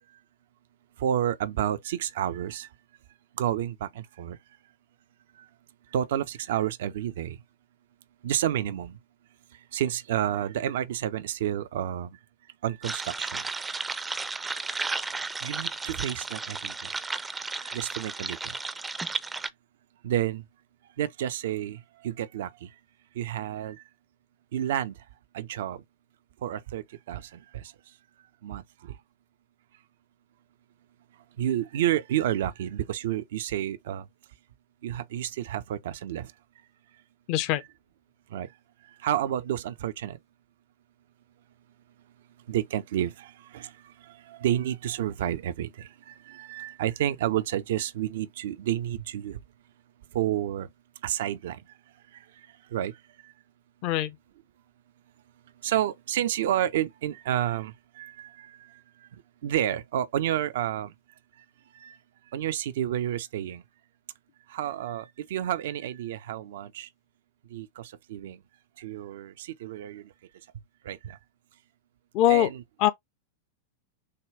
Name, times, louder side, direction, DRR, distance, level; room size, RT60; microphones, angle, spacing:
voice 1, 1.0-2.7 3.4-4.4 5.9-7.4 8.2-9.0 9.7-12.1 12.6-13.4 15.4-16.9 17.6-18.5 20.0-20.4 21.0-21.8 22.0-22.5 23.2-23.8 24.5-24.9 25.3-25.8 26.4-27.2 28.4-28.6 31.4-34.0 34.8-36.3 38.3-38.5 39.0-40.2 42.5-43.7 44.4-45.9 46.3-49.4 50.1-50.7 51.0-51.6 52.7-52.9 55.6-58.5 59.4-60.9 61.8-61.9 62.3-63.6 64.5-66.9 67.5-68.4 68.8-70.0 70.9-71.2 72.3-72.6, right 11 dB, 65° right, 0.6 m, -30 dB
sound 1, 12.8-19.5, right 3 dB, 15° right, 0.5 m, -33 dB
voice 2, 37.3-37.6 53.8-54.2 72.1-72.5 72.8-72.9, left 12 dB, 50° left, 0.7 m, -22 dB
6.6 x 2.3 x 3.4 m
figure-of-eight pair, 90°, 0 cm